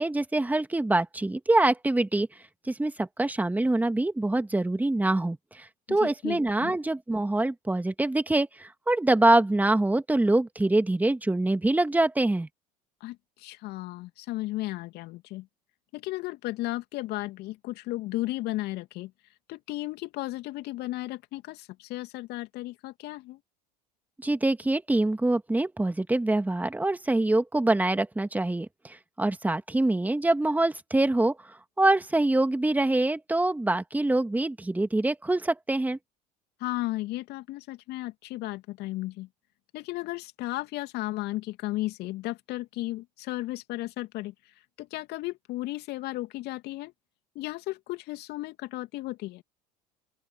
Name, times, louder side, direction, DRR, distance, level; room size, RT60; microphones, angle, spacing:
voice 1, 0.0-2.3 2.7-12.5 24.2-31.4 31.8-36.0, right 2 dB, 10° right, 2.5 m, -25 dB
voice 2, 5.9-6.7 13.0-15.5 15.9-19.1 19.5-23.4 36.6-39.3 39.7-46.9 47.3-49.4, left 18 dB, 55° left, 2.7 m, -34 dB
open air
hypercardioid pair, 75°, 20 cm